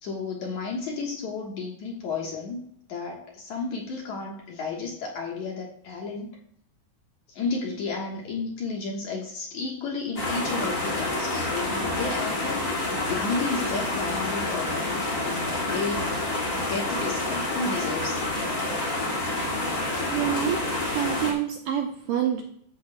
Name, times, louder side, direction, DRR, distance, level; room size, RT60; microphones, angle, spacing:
voice 1, 0.0-2.6 2.9-6.3 7.3-12.6 12.9-16.1 16.6-18.2, left 4 dB, 60° left, -1 dB, 2.2 m, -32 dB
sound 1, 10.1-21.3, left 2 dB, 30° left, 1.7 m, -28 dB
voice 2, 20.1-22.4, right 9 dB, 75° right, 2 dB, 2.1 m, -27 dB
14.0 x 8.2 x 2.2 m, 0.66 s
omnidirectional pair, 4.6 m